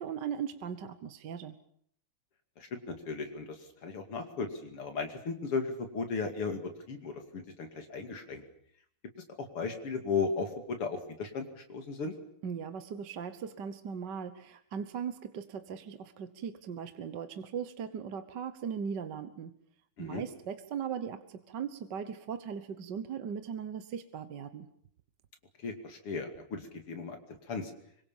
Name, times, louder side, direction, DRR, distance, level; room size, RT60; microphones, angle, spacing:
voice 1, 0.0-1.6 12.4-19.5 20.0-24.7, right 7 dB, 55° right, 10 dB, 1.7 m, -38 dB
voice 2, 2.6-8.4 9.4-12.1 20.0-20.2 25.6-27.2 27.5-27.7, left 4 dB, 85° left, 5 dB, 3.5 m, -36 dB
25.5 x 23.5 x 7.3 m, 0.66 s
omnidirectional pair, 2.4 m